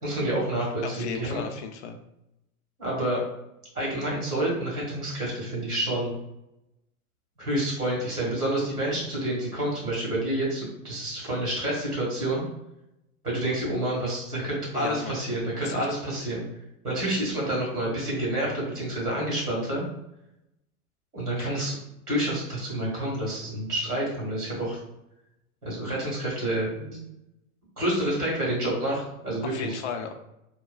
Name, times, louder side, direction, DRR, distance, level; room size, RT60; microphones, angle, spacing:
voice 1, 0.0-1.4 2.8-3.2 3.7-6.1 7.4-12.4 13.2-16.4 16.8-19.8 21.1-21.7 22.1-24.8 25.6-27.0 27.8-29.8, right 1 dB, 90° right, -4 dB, 1.5 m, -28 dB
voice 2, 0.8-2.0 14.7-15.2 15.6-15.9 21.4-21.5 29.4-30.1, left 6 dB, 50° left, 5 dB, 0.5 m, -35 dB
2.8 x 2.3 x 2.3 m, 0.86 s
figure-of-eight pair, 90°, 44 cm